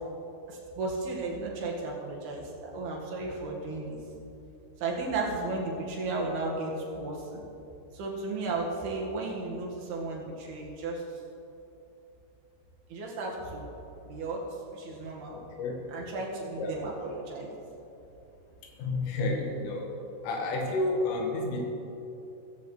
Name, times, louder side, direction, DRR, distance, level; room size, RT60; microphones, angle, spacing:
voice 1, 0.5-4.0 4.8-7.4 7.9-11.0 12.9-13.7 14.0-14.4 14.7-15.4 15.9-17.5, right 3 dB, 60° right, -2 dB, 3.3 m, -34 dB
voice 2, 15.3-15.9 16.6-16.8 18.8-20.0 20.2-21.6, left 2 dB, 90° left, 1 dB, 4.3 m, -30 dB
16.0 x 15.0 x 3.2 m, 2.8 s
omnidirectional pair, 5.7 m